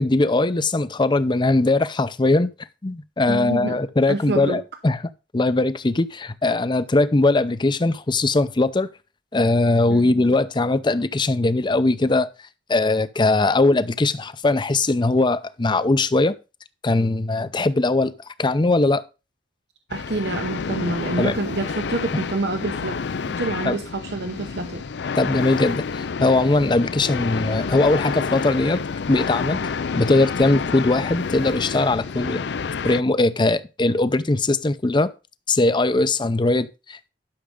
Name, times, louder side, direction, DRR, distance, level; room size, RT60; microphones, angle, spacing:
voice 1, 0.0-2.5 2.8-8.9 9.3-12.3 12.7-16.4 16.8-18.1 18.4-19.0 21.2-21.4 22.1-22.2 23.6-23.8 25.2-25.8 26.2-28.8 29.1-29.6 30.0-32.4 32.8-35.1 35.5-37.1, left 2 dB, 25° left, 0.6 m, -20 dB
voice 2, 3.3-4.6 9.9-10.2 19.9-23.0 23.3-24.8, right 2 dB, 70° right, 0.9 m, -27 dB
sound 1, 19.9-33.0, left 5 dB, 75° left, 0.5 m, -29 dB
11.5 x 6.2 x 3.8 m
head